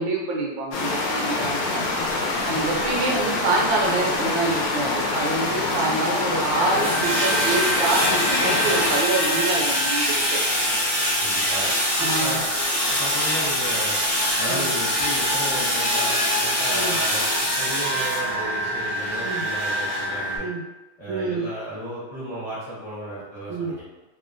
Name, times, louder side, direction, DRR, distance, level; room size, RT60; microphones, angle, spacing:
voice 1, 0.0-1.8 2.4-10.4 12.0-12.4 14.5-14.7 16.7-17.0 19.2-19.4 20.4-20.6 21.1-21.5 23.5-23.7, right 2 dB, 75° right, -1 dB, 1.2 m, -26 dB
sound 1, 0.7-9.0, left 2 dB, 90° left, 1.5 m, -25 dB
voice 2, 1.3-1.8 11.2-11.7 12.0-12.5 12.9-14.0 14.4-17.2 17.6-20.5 21.0-23.8, right 1 dB, 50° left, -12 dB, 0.4 m, -34 dB
sound 2, 3.4-3.5 4.4-20.4, equal, 70° left, 1.4 m, -24 dB
3.5 x 2.2 x 2.5 m, 1.1 s
omnidirectional pair, 2.3 m